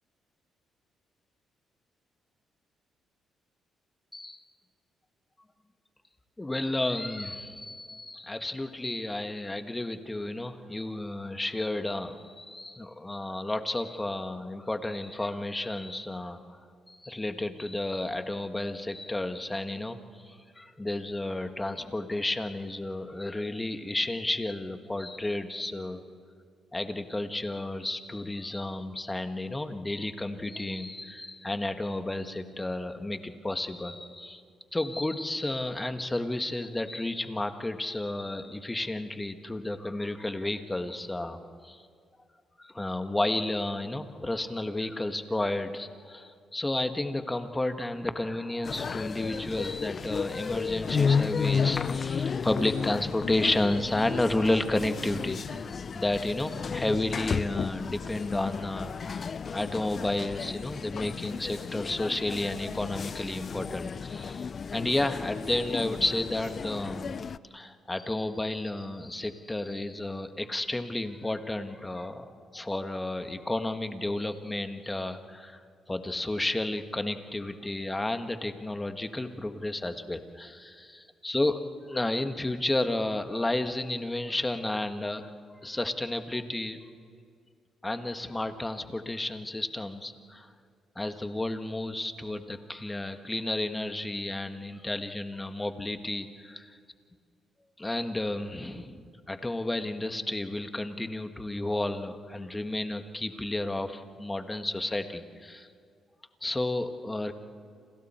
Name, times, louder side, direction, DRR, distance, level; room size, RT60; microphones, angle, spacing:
voice 1, 4.1-4.4 6.4-16.6 16.9-20.0 20.2-26.0 26.7-34.4 34.7-41.8 42.6-59.3 59.5-67.2 67.5-75.6 75.9-81.6 81.9-85.3 85.6-86.8 87.8-90.5 90.9-96.8 97.8-105.7 106.4-107.3, left 2 dB, 15° left, 7 dB, 1.5 m, -32 dB
sound 1, 48.6-67.4, left 6 dB, 45° left, 0.5 m, -33 dB
29.5 x 27.0 x 4.4 m, 2.2 s
cardioid pair, 90°, 0 cm